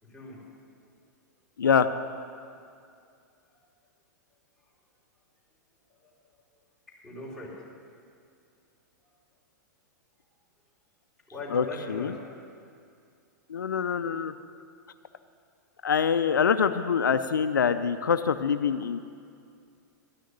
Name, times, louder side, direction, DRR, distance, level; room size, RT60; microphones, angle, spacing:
voice 1, 0.0-0.4 2.3-2.6 5.9-6.4 6.9-7.6 9.0-9.1 11.3-12.3, left 2 dB, 5° left, -6 dB, 3.7 m, -41 dB
voice 2, 1.6-1.9 11.5-12.1 13.5-14.3 15.8-19.0, left 7 dB, 90° left, 10 dB, 0.5 m, -25 dB
13.0 x 6.4 x 9.8 m, 2.4 s
hypercardioid pair, 115°, 10 cm